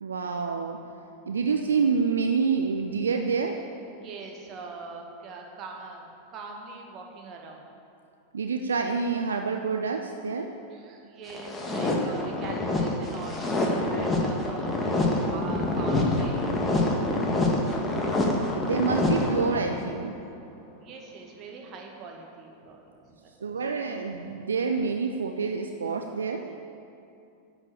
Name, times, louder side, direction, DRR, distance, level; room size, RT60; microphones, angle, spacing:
voice 1, 0.0-0.8 1.3-3.6 8.3-10.5 18.5-20.2 23.4-26.4, right 5 dB, 70° right, 5 dB, 0.6 m, -27 dB
voice 2, 3.9-7.7 10.7-16.5 17.6-18.0 20.8-22.8 23.2-23.6, right 4 dB, 35° right, 1 dB, 1.9 m, -42 dB
sound 1, 11.3-19.9, left 2 dB, 15° left, 1.7 m, -26 dB
10.5 x 7.2 x 8.4 m, 2.6 s
figure-of-eight pair, 90°, 0 cm